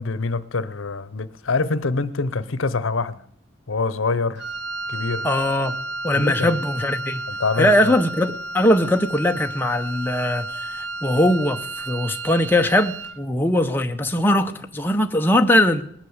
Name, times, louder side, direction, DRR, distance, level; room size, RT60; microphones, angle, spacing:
voice 1, 0.0-3.2 3.7-4.4 4.9-5.3 6.1-6.6 7.3-7.9, left 3 dB, 80° left, 0.8 m, -25 dB
Wind instrument woodwind instrument, 4.4-13.2, right 2 dB, 60° right, 0.7 m, -32 dB
voice 2, 5.2-5.7 6.0-7.2 7.6-15.8, left 1 dB, 10° left, 0.7 m, -20 dB
19.0 x 9.0 x 7.9 m
head